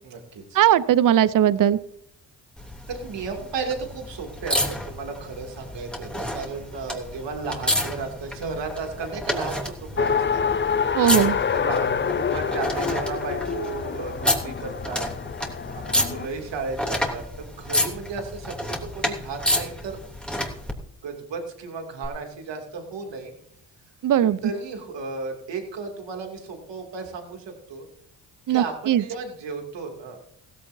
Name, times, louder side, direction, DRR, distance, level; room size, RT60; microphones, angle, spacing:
voice 1, 0.0-0.6 2.9-10.4 11.5-15.1 15.7-20.0 21.0-23.3 24.2-27.9 28.5-30.2, right 4 dB, 65° right, 3 dB, 2.8 m, -34 dB
voice 2, 0.5-1.8 10.9-11.4 24.0-24.4 28.5-29.0, right 11 dB, 45° right, 17 dB, 0.7 m, -19 dB
sound 1, 2.6-20.7 22.0-22.1, left 1 dB, ahead, 3.0 m, -30 dB
Race car auto racing, 10.0-16.3, left 6 dB, 25° left, 0.6 m, -26 dB
16.0 x 15.0 x 2.7 m, 0.69 s
hypercardioid pair, 45°, 46 cm